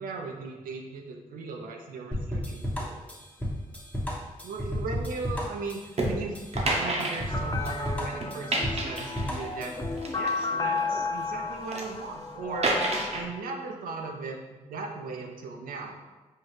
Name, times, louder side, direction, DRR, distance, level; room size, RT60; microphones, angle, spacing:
voice 1, 0.0-3.0 4.4-9.8 10.2-12.7 13.1-16.0, right 4 dB, 85° right, 2 dB, 0.5 m, -38 dB
sound 1, 2.1-10.0, equal, 10° left, 0.9 m, -32 dB
sound 2, 6.0-6.1 6.5-7.9 8.2-9.5 10.0-11.0 11.5-11.9 12.6-13.2, right 2 dB, 50° right, 0.7 m, -30 dB
sound 3, 7.3-13.4, left 4 dB, 30° left, 0.3 m, -33 dB
4.4 x 2.3 x 3.2 m, 1.2 s
supercardioid pair, 40°, 14 cm